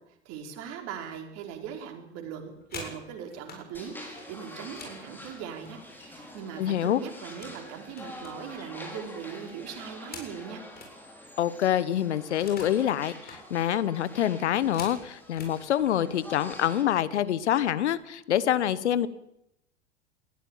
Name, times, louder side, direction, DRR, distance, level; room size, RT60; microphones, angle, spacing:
voice 1, 0.2-10.6, right 7 dB, 45° right, 4 dB, 4.8 m, -40 dB
sound 1, 2.4-3.6 4.0-6.4 6.7-7.6 7.9-10.9 11.3-11.4 11.6-12.8 13.1-13.4 13.9-15.6 16.4-16.6 16.9-17.2 17.5-18.0, left 4 dB, 25° left, 7.5 m, -47 dB
sound 2, 3.7-16.8, left 1 dB, 5° left, 5.9 m, -46 dB
voice 2, 6.6-7.0 11.4-19.1, left 11 dB, 75° left, 17 dB, 1.3 m, -26 dB
20.5 x 15.0 x 9.1 m, 0.81 s
hypercardioid pair, 95°, 35 cm